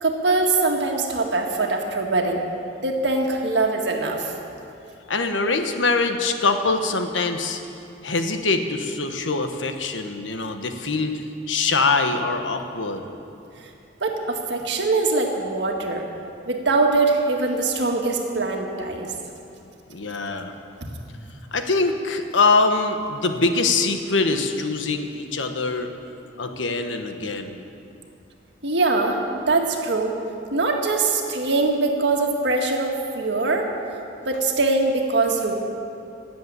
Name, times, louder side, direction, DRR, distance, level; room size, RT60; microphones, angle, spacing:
voice 1, 0.0-2.4 2.8-4.3 14.0-16.1 16.5-19.1 28.6-30.2 30.5-33.7 34.2-35.5, right 3 dB, 65° right, 2 dB, 1.8 m, -22 dB
voice 2, 5.1-7.6 8.0-11.2 11.5-13.1 19.9-20.5 21.5-25.9 26.4-27.6, left 3 dB, 85° left, 6 dB, 1.2 m, -23 dB
17.5 x 7.7 x 8.7 m, 2.7 s
head